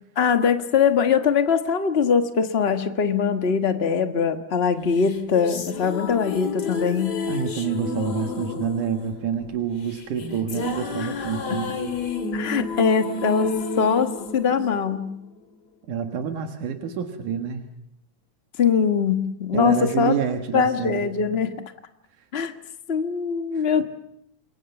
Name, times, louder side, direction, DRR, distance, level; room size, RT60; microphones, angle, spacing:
voice 1, 0.2-7.2 11.5-11.6 12.3-15.2 18.6-20.1 20.5-21.6 22.3-22.5 22.9-23.8, left 6 dB, 60° left, 8 dB, 0.6 m, -22 dB
sound 1, 5.0-15.4, left 4 dB, 35° left, 2.2 m, -31 dB
voice 2, 7.3-11.8 15.9-17.7 19.5-21.1 22.4-22.5 23.5-23.8, right 7 dB, 80° right, 5 dB, 3.2 m, -28 dB
29.0 x 22.0 x 7.1 m, 0.78 s
omnidirectional pair, 3.5 m